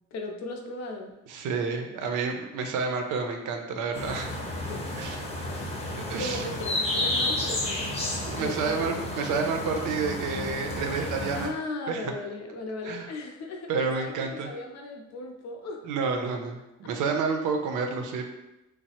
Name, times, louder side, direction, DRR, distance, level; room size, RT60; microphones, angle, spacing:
voice 1, 0.1-1.1 4.7-4.8 6.2-9.0 11.3-14.1 14.4-15.8, left 2 dB, 60° left, 3 dB, 0.5 m, -37 dB
voice 2, 1.3-4.4 5.0-5.2 6.1-6.4 8.3-11.5 11.9-12.1 12.8-13.1 13.7-14.5 15.8-18.3, right 5 dB, 85° right, 4 dB, 0.5 m, -29 dB
sound 1, 3.9-11.5, left 1 dB, 20° left, 0.6 m, -31 dB
3.1 x 2.0 x 2.8 m, 0.94 s
cardioid pair, 90°, 30 cm